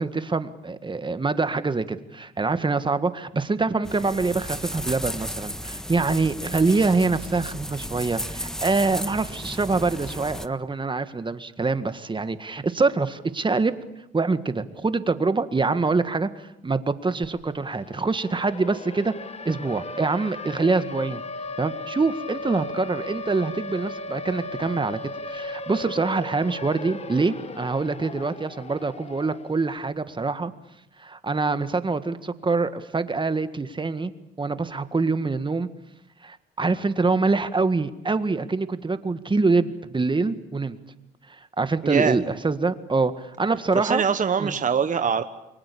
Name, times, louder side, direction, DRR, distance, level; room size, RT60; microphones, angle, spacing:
voice 1, 0.0-13.7 14.1-19.1 19.5-21.2 21.6-25.0 25.3-30.5 31.0-34.1 34.4-35.7 36.2-40.8 41.6-44.0 44.4-44.6, right 3 dB, 25° right, 11 dB, 1.8 m, -25 dB
sound 1, 3.8-10.5, equal, 5° left, 1.5 m, -34 dB
Siren, 17.2-17.3 17.6-29.7, left 2 dB, 30° left, 1.9 m, -37 dB
voice 2, 41.8-42.2 43.7-45.2, right 6 dB, 40° right, 9 dB, 1.3 m, -23 dB
29.5 x 22.5 x 8.6 m, 0.86 s
cardioid pair, 90°, 20 cm